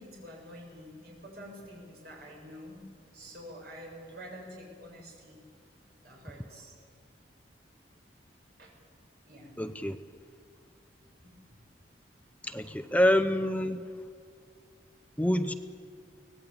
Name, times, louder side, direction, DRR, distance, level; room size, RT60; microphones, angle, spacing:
voice 1, 0.0-2.8 3.1-5.4 6.0-6.7 8.6-8.7 9.3-9.5 11.2-11.4, equal, 55° right, -1 dB, 7.2 m, -47 dB
voice 2, 9.6-10.0 12.4-13.8 15.2-15.5, equal, 10° left, 10 dB, 0.7 m, -26 dB
24.0 x 18.0 x 8.9 m, 2.2 s
head